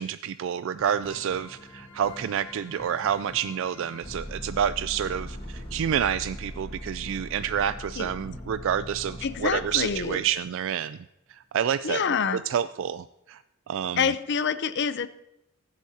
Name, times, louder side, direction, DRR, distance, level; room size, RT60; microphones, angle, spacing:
voice 1, 0.0-11.0 11.3-12.0 12.3-13.4 13.7-14.1, right 8 dB, 65° right, 13 dB, 0.3 m, -28 dB
sound 1, 0.8-10.6 12.1-12.3 12.8-12.9, left 1 dB, 25° left, 1.8 m, -41 dB
voice 2, 9.2-10.2 11.8-12.4 14.0-15.1, left 6 dB, 55° left, 13 dB, 0.6 m, -26 dB
21.0 x 8.2 x 2.8 m, 0.90 s
head